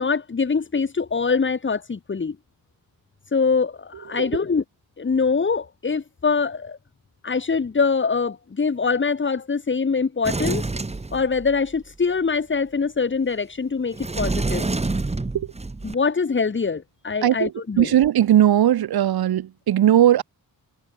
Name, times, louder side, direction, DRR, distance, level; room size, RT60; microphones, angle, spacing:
voice 1, 0.0-2.4 3.3-4.6 5.0-6.8 7.2-10.6 11.1-14.7 15.8-17.9, left 5 dB, 30° left, 5.4 m, -23 dB
Sliding door, 10.2-11.8 13.9-15.9, right 3 dB, 15° right, 3.7 m, -27 dB
voice 2, 17.8-20.2, right 11 dB, 85° right, 1.5 m, -18 dB
wide cardioid pair, 160°, 36 cm